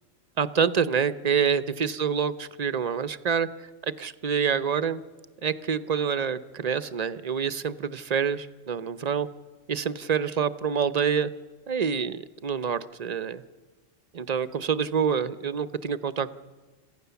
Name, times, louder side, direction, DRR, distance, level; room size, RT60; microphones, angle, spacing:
voice 1, 0.4-3.5 3.8-5.0 5.4-9.3 9.7-11.3 11.7-13.4 14.1-16.4, right 7 dB, 40° right, 13 dB, 0.7 m, -27 dB
27.5 x 15.5 x 7.0 m, 1.3 s
omnidirectional pair, 1.3 m